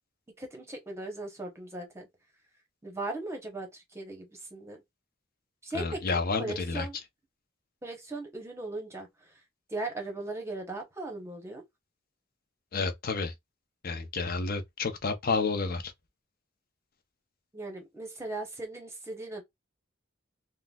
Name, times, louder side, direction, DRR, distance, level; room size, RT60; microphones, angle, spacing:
voice 1, 0.4-2.1 2.8-4.8 5.6-7.0 7.8-9.3 9.7-11.6 17.5-19.4, right 2 dB, 15° right, 0.8 m, -38 dB
voice 2, 5.7-6.9 12.7-13.3 13.8-15.9, left 4 dB, 50° left, 0.6 m, -30 dB
3.7 x 2.1 x 2.3 m
head